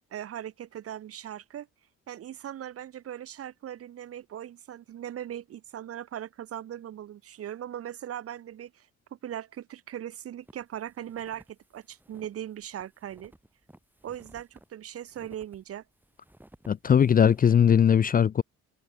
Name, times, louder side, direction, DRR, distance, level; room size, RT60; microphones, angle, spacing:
voice 1, 0.1-1.7 2.1-13.3 14.0-15.8, right 11 dB, 50° right, 0.7 m, -39 dB
sound 1, 10.4-17.7, right 1 dB, 5° right, 3.3 m, -57 dB
voice 2, 16.7-18.4, left 8 dB, 30° left, 0.4 m, -20 dB
cardioid pair, 90°, 30 cm